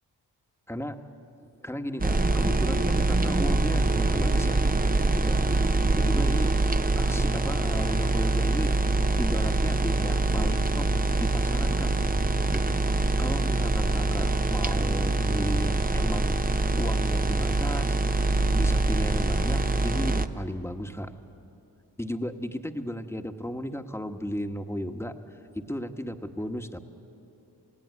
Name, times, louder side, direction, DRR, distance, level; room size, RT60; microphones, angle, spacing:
voice 1, 1.6-4.6 5.1-5.4 6.0-6.5 6.9-8.8 9.1-10.9 11.2-21.1 22.0-26.8, equal, 5° left, 6 dB, 1.5 m, -35 dB
sound 1, 2.0-20.3, right 2 dB, 20° right, 1.0 m, -24 dB
29.0 x 16.5 x 9.6 m, 2.9 s
cardioid pair, 55°, 42 cm